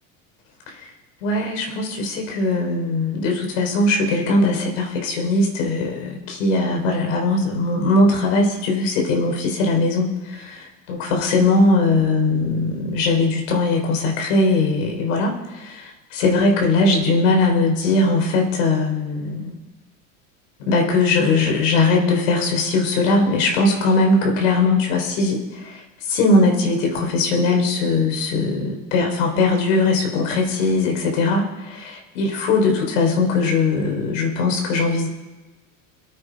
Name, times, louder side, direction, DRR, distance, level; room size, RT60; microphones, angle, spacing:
voice 1, 1.2-19.6 20.6-35.1, left 3 dB, 85° left, 1 dB, 4.2 m, -20 dB
23.0 x 8.8 x 4.8 m, 1.2 s
supercardioid pair, 105°, 38 cm